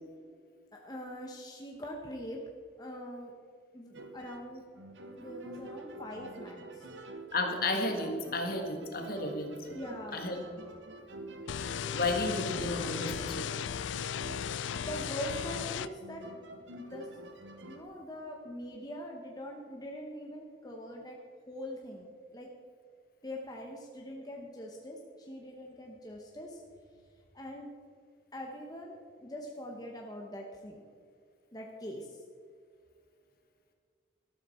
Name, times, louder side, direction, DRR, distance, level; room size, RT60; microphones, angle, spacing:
voice 1, 0.7-2.4 2.8-3.3 3.7-4.6 5.2-6.9 9.7-10.3 12.8-13.0 14.8-16.3 16.7-17.1 17.6-21.2 21.5-22.5 23.2-26.6 27.3-27.7 28.3-30.8 31.5-32.2, equal, 20° left, 0 dB, 1.1 m, -43 dB
sound 1, 3.9-17.8, right 2 dB, 70° right, 1.2 m, -47 dB
voice 2, 7.3-9.5 10.1-10.4 11.9-13.5, left 2 dB, 50° left, 3 dB, 1.8 m, -32 dB
sound 2, 11.5-15.9, left 8 dB, 70° left, 0.4 m, -36 dB
13.5 x 12.5 x 4.4 m, 2.1 s
head